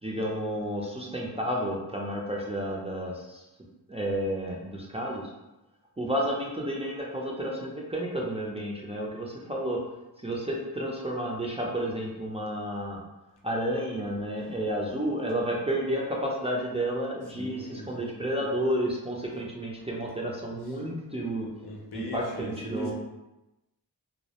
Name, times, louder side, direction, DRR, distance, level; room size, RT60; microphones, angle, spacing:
voice 1, 0.0-3.4 3.9-5.3 6.0-9.8 10.2-13.0 13.4-21.5 21.9-22.9, right 1 dB, 15° right, -3 dB, 0.4 m, -31 dB
voice 2, 17.4-17.9 21.6-22.9, left 2 dB, 65° left, -1 dB, 0.6 m, -40 dB
2.2 x 2.1 x 2.8 m, 0.98 s
cardioid pair, 55°, 42 cm